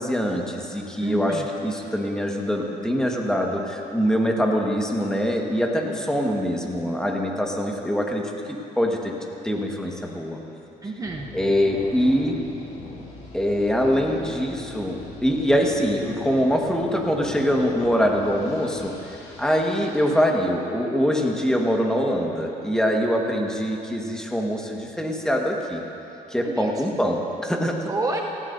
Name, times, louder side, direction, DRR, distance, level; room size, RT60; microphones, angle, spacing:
voice 1, 0.0-9.1 9.4-10.4 11.3-12.4 13.3-25.8 26.3-27.7, equal, 5° left, 0 dB, 1.5 m, -24 dB
voice 2, 1.0-1.5 10.8-11.3 26.4-27.0 27.9-28.2, right 3 dB, 20° right, 1 dB, 0.8 m, -29 dB
sound 1, 11.0-20.0, left 2 dB, 40° left, 2.8 m, -41 dB
18.5 x 15.5 x 2.7 m, 2.9 s
cardioid pair, 110°, 17 cm